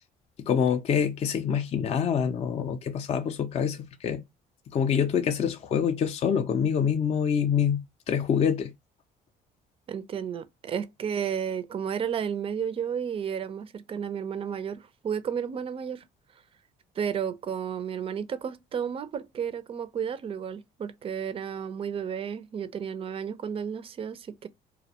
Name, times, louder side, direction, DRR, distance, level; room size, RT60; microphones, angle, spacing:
voice 1, 0.4-4.2 4.7-8.7, left 7 dB, 40° left, 0.4 m, -26 dB
voice 2, 9.9-16.0 17.0-24.5, right 7 dB, 35° right, 0.4 m, -32 dB
2.4 x 2.1 x 2.7 m
cardioid pair, 110°, 17 cm